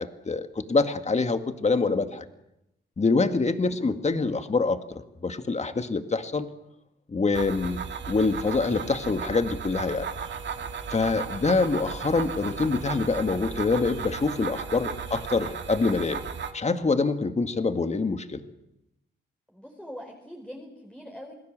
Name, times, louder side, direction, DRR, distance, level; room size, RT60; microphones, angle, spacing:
voice 1, 0.0-2.3 3.0-6.5 7.1-10.1 10.9-16.2 16.5-18.4, left 3 dB, 35° left, 9 dB, 2.0 m, -25 dB
voice 2, 3.6-4.0 14.7-15.2 19.5-21.3, equal, 5° left, 1 dB, 4.5 m, -44 dB
sound 1, 7.3-16.5, right 6 dB, 65° right, 2.3 m, -35 dB
28.0 x 19.0 x 7.6 m, 0.85 s
cardioid pair, 65°, 20 cm